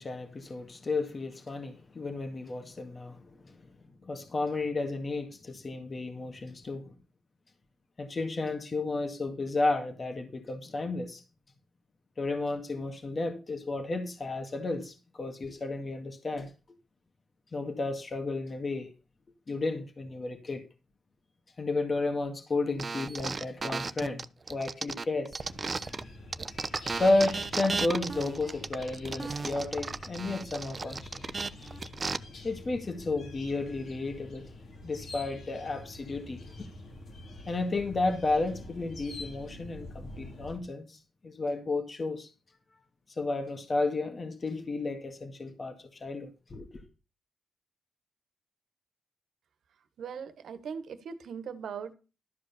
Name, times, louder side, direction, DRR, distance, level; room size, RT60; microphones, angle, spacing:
voice 1, 0.0-3.6 4.0-6.9 8.0-11.2 12.2-16.5 17.5-18.9 19.5-20.6 21.6-25.4 27.0-31.2 32.4-34.5 34.8-36.7 37.5-42.3 43.1-46.7, left 2 dB, 45° left, 1.9 m, -32 dB
sound 1, 22.8-26.0 26.3-32.2, right 4 dB, 40° right, 0.7 m, -35 dB
sound 2, 25.4-40.6, left 2 dB, 75° left, 2.9 m, -46 dB
voice 2, 50.0-51.9, right 6 dB, 80° right, 1.4 m, -39 dB
12.5 x 5.0 x 6.9 m
cardioid pair, 65°, 0 cm